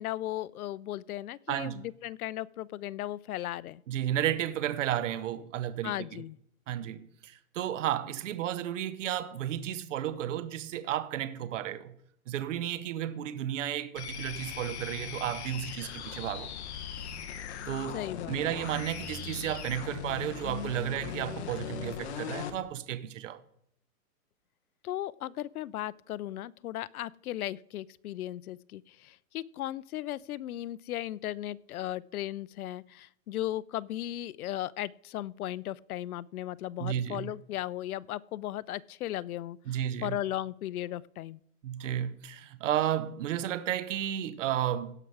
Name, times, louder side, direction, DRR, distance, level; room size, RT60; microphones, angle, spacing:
voice 1, 0.0-3.8 5.8-6.4 17.9-18.6 24.8-41.4, left 13 dB, 80° left, 0.6 m, -36 dB
voice 2, 1.5-1.8 3.9-6.0 6.7-11.9 12.3-16.5 17.7-23.4 36.8-37.3 39.7-40.2 41.6-45.0, right 11 dB, 60° right, 1.0 m, -33 dB
sound 1, 14.0-22.6, left 8 dB, 50° left, 1.3 m, -39 dB
16.5 x 5.9 x 4.8 m
hypercardioid pair, 155°, 43 cm